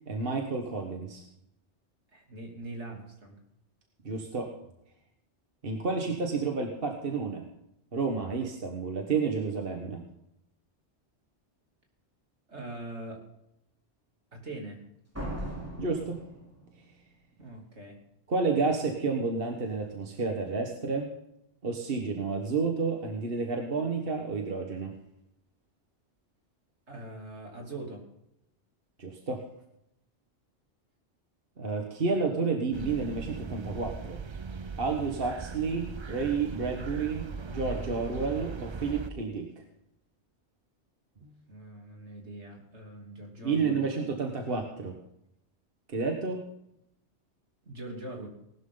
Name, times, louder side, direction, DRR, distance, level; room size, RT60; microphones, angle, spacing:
voice 1, 0.1-1.2 4.1-4.5 5.6-7.4 7.9-10.0 15.8-16.2 18.3-21.1 21.6-24.9 29.0-29.4 31.6-34.2 34.8-39.6 41.2-41.3 43.4-44.9 45.9-46.5, right 4 dB, 55° right, 3 dB, 1.7 m, -30 dB
voice 2, 2.1-3.4 12.5-13.3 14.3-14.8 17.4-18.0 26.9-28.1 41.5-43.9 47.7-48.3, right 2 dB, 75° right, 0 dB, 3.6 m, -42 dB
Slam, 15.1-17.1, right 1 dB, 10° right, 3.5 m, -38 dB
sound 1, 32.7-39.1, right 5 dB, 35° right, 0.4 m, -39 dB
19.0 x 12.5 x 3.9 m, 0.82 s
omnidirectional pair, 1.2 m